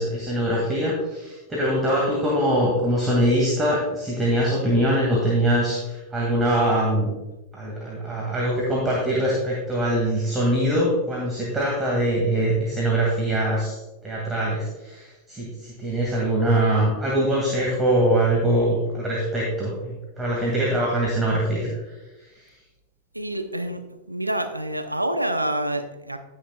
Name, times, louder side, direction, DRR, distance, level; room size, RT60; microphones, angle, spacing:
voice 1, 0.0-7.1 7.5-13.8 14.0-21.7, right 1 dB, 10° right, -4 dB, 2.3 m, -23 dB
voice 2, 23.1-23.8 24.1-26.2, right 1 dB, 85° right, 8 dB, 0.7 m, -27 dB
16.0 x 6.4 x 2.4 m, 1.1 s
figure-of-eight pair, 90°, 0 cm